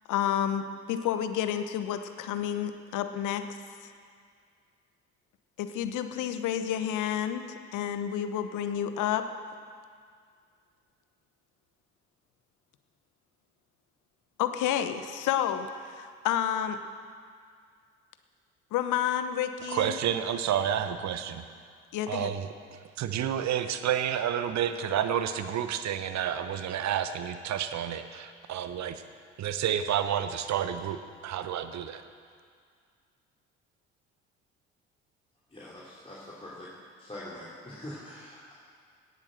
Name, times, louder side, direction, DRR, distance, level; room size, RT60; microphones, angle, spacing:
voice 1, 0.1-3.4 3.8-3.9 5.6-9.3 14.4-16.8 18.7-20.0 21.9-22.3, left 10 dB, 60° left, 9 dB, 1.1 m, -30 dB
voice 2, 19.7-21.4 22.1-29.0 29.4-32.0, right 9 dB, 50° right, 10 dB, 1.0 m, -30 dB
voice 3, 35.5-36.7 37.0-38.5, left 1 dB, 15° left, -7 dB, 3.1 m, -44 dB
17.5 x 8.3 x 6.6 m, 2.1 s
figure-of-eight pair, 50°, 35 cm